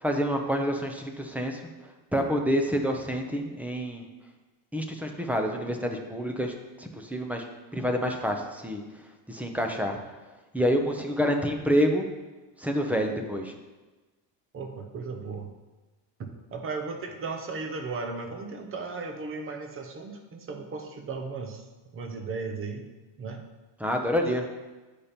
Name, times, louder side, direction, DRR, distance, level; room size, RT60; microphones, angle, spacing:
voice 1, 0.0-1.6 2.1-4.0 4.7-6.5 6.8-7.4 7.7-8.8 9.3-10.0 10.5-12.1 12.6-13.5 23.8-24.4, equal, 5° right, 3 dB, 0.6 m, -27 dB
voice 2, 14.5-15.5 16.2-21.6 21.9-22.9 23.2-23.4, right 4 dB, 30° right, 4 dB, 0.9 m, -36 dB
8.5 x 5.2 x 4.3 m, 1.2 s
cardioid pair, 145°, 47 cm